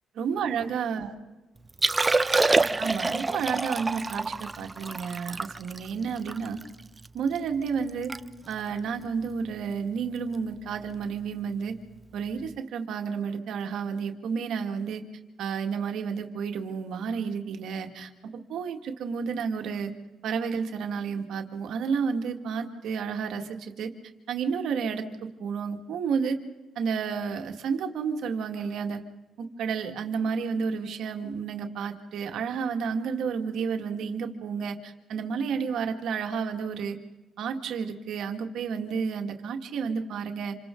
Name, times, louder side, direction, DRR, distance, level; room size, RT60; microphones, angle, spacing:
voice 1, 0.2-1.1 2.8-6.6 7.1-8.1 8.5-11.8 12.1-15.0 15.4-19.9 20.2-23.9 24.3-26.4 26.8-29.0 29.4-37.0 37.4-40.5, right 6 dB, 75° right, 5 dB, 2.0 m, -31 dB
Liquid, 1.7-7.1 7.5-7.6 7.9-8.2 8.5-8.7 9.3-9.5 11.0-11.1, right 3 dB, 20° right, 0.7 m, -27 dB
27.5 x 27.0 x 3.9 m, 1.2 s
cardioid pair, 90°, 0 cm